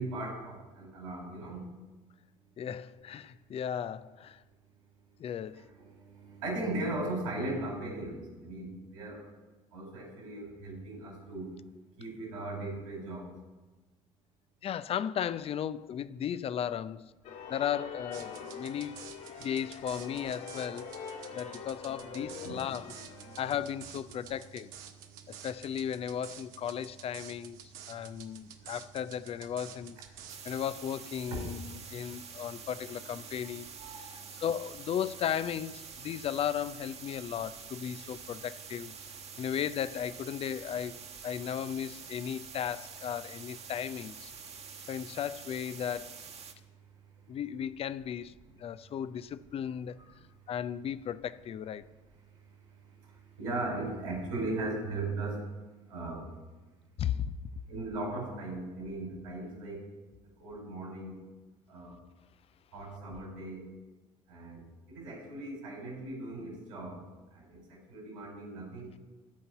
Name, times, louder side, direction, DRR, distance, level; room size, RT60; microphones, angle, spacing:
voice 1, 0.0-1.6 5.2-9.3 9.7-11.5 12.0-13.3 22.4-22.5 23.1-23.4 24.3-24.4 24.9-25.5 27.7-28.7 30.2-30.5 31.8-32.6 33.3-34.4 39.3-39.4 44.5-44.9 46.6-47.3 49.9-50.1 52.3-55.5 55.9-56.3 57.7-59.9 60.4-61.2 61.7-62.0 62.7-63.7 64.3-67.0 67.3-68.9, right 2 dB, 75° right, 4.8 m, -39 dB
voice 2, 2.6-4.4 5.2-5.7 14.6-17.1 17.5-19.0 19.4-22.9 23.4-24.7 25.3-27.6 27.9-30.0 30.4-33.7 34.0-34.1 34.4-38.9 39.4-44.3 44.9-46.2 47.3-50.0 50.5-51.9 57.0-57.3, left 9 dB, 35° left, 0.5 m, -35 dB
sound 1, 17.2-23.4, left 6 dB, 65° left, 2.8 m, -44 dB
sound 2, 18.1-30.6, right 9 dB, 60° right, 1.2 m, -50 dB
sound 3, 30.3-46.5, right 6 dB, 35° right, 1.5 m, -47 dB
14.0 x 5.4 x 8.8 m
figure-of-eight pair, 55°, 17 cm